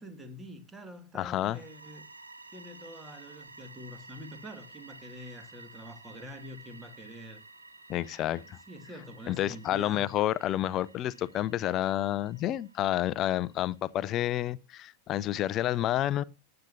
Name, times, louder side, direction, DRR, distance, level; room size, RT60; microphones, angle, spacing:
voice 1, 0.0-2.1 2.5-7.4 8.1-10.1, equal, 15° right, 2.1 m, -46 dB
voice 2, 1.1-1.6 7.9-8.6 9.3-16.2, left 13 dB, 35° left, 0.5 m, -29 dB
sound 1, 1.3-14.0, right 3 dB, 80° right, 1.4 m, -53 dB
19.0 x 8.8 x 2.7 m
figure-of-eight pair, 90°, 0 cm